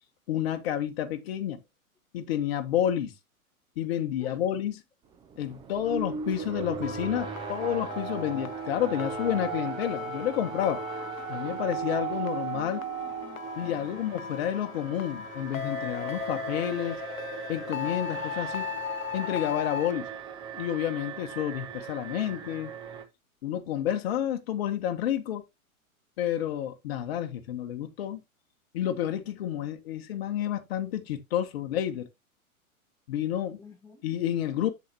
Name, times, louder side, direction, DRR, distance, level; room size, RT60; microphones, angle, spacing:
voice 1, 0.3-1.6 2.1-3.1 3.8-4.7 5.4-10.8 11.3-12.8 13.6-17.0 17.5-18.7 19.1-20.1 20.5-22.7 23.4-25.4 26.2-28.2 28.7-32.1 33.1-33.6 34.0-34.7, left 10 dB, 45° left, 1.1 m, -30 dB
Alarm, 5.1-23.0, right 7 dB, 10° right, 0.6 m, -37 dB
sound 1, 6.8-19.9, left 9 dB, 65° left, 0.8 m, -38 dB
voice 2, 12.5-14.3 33.6-34.0, left 3 dB, 5° left, 1.1 m, -52 dB
7.6 x 7.3 x 2.8 m
figure-of-eight pair, 105°, 43 cm